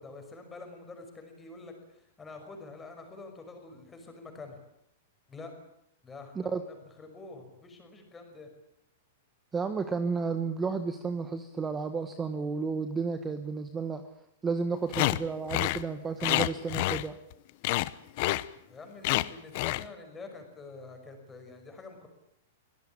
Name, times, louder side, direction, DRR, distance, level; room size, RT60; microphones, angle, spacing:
voice 1, 0.0-4.6 5.3-5.5 6.0-8.5 18.7-22.1, left 3 dB, 10° left, 4 dB, 5.9 m, -47 dB
voice 2, 9.5-14.0 14.4-17.2, right 5 dB, 15° right, 9 dB, 1.4 m, -32 dB
sound 1, 14.9-15.2 15.5-15.8 16.2-17.3 17.6-17.9 18.2-18.5 19.0-19.3 19.5-19.9, left 19 dB, 45° left, 0.9 m, -27 dB
24.0 x 17.5 x 8.9 m, 0.78 s
supercardioid pair, 160°, 0 cm